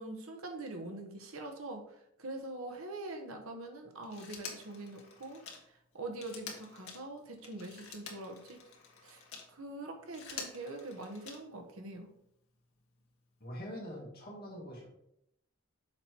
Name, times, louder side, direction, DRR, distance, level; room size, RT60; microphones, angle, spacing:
voice 1, 0.0-5.4 5.7-8.6 9.0-9.2 9.5-12.1, right 2 dB, 85° right, 3 dB, 1.2 m, -44 dB
Telephone, 4.0-9.5 10.0-11.7 13.0-13.1, left 5 dB, 90° left, 1.5 m, -48 dB
voice 2, 13.4-14.9, equal, 45° left, -2 dB, 2.2 m, -44 dB
6.6 x 4.4 x 4.6 m, 0.76 s
head